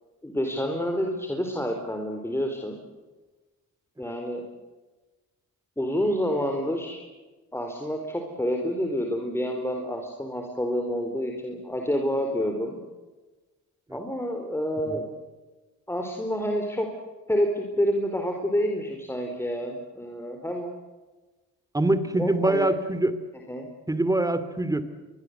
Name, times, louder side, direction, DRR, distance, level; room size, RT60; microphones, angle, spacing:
voice 1, 0.2-2.8 4.0-4.4 5.8-7.0 7.5-12.8 13.9-15.0 15.9-16.9 17.3-20.7 22.2-22.7 23.5-23.7, equal, 10° left, 2 dB, 4.3 m, -28 dB
voice 2, 21.7-23.1 23.9-24.8, right 2 dB, 10° right, 12 dB, 2.7 m, -24 dB
26.5 x 22.5 x 8.1 m, 1.2 s
cardioid pair, 90°, 30 cm